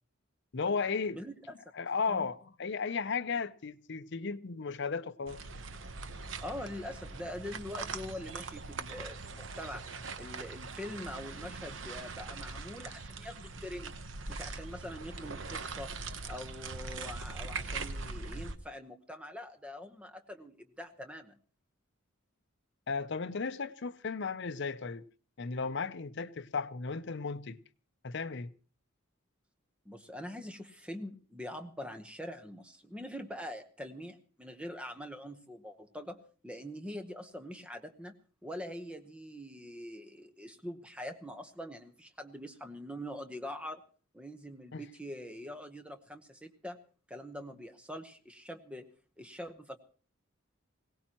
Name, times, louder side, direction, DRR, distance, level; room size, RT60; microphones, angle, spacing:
voice 1, 0.5-1.2 1.7-5.4 22.9-25.1 25.4-27.6 28.0-28.5 44.7-44.8, left 5 dB, 55° left, 0.6 m, -35 dB
voice 2, 1.1-1.5 2.1-2.3 6.4-9.8 10.2-13.9 14.3-15.9 16.3-21.4 29.8-38.1 38.4-43.8 44.1-46.8 47.1-48.9 49.2-49.8, left 1 dB, 5° right, 1.0 m, -44 dB
sound 1, 5.3-18.6, right 4 dB, 65° right, 0.9 m, -42 dB
21.0 x 17.5 x 3.0 m
head